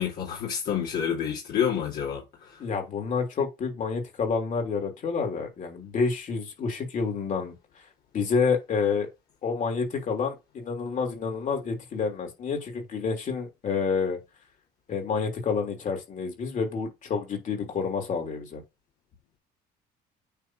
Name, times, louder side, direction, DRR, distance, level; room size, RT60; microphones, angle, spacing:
voice 1, 0.0-2.2, left 8 dB, 65° left, 3.0 m, -28 dB
voice 2, 2.6-7.5 8.1-9.1 9.4-14.2 14.9-18.6, left 5 dB, 50° left, 3.3 m, -28 dB
9.1 x 3.4 x 4.5 m
cardioid pair, 110°, 17 cm